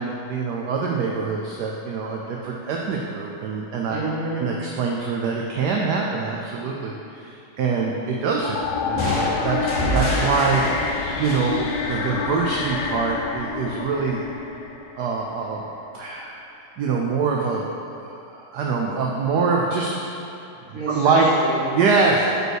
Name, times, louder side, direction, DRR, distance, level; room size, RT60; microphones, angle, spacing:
voice 1, 0.0-4.0 4.4-9.6 9.9-10.6 11.2-14.2 15.0-15.6 15.9-16.4 16.8-19.9 20.7-21.3 21.7-22.2, right 4 dB, 70° right, -1 dB, 1.1 m, -24 dB
voice 2, 3.9-4.5 9.6-10.0 20.7-21.6, right 2 dB, 30° right, -8 dB, 1.7 m, -28 dB
sound 1, 8.4-15.5, left 5 dB, 85° left, 1.4 m, -28 dB
sound 2, 9.0-12.6, equal, 35° left, 0.5 m, -27 dB
5.2 x 4.6 x 6.3 m, 2.7 s
omnidirectional pair, 2.1 m